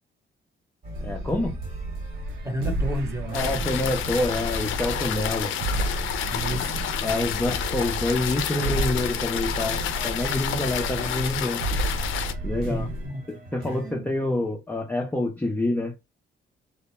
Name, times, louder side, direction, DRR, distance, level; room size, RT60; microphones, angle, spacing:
sound 1, 0.8-13.9, left 1 dB, 45° right, 1.3 m, -41 dB
sound 2, 0.9-13.1, right 2 dB, 75° right, 0.4 m, -32 dB
voice 1, 1.0-1.6 3.3-5.5 7.0-11.6 12.4-12.9 13.3-15.9, left 2 dB, 10° left, 0.5 m, -27 dB
voice 2, 2.4-3.7 6.3-6.9 12.6-13.2 13.6-14.1, equal, 15° right, 0.9 m, -32 dB
sound 3, 3.3-12.3, left 9 dB, 80° left, 0.5 m, -30 dB
2.1 x 2.1 x 2.9 m
cardioid pair, 90°, 20 cm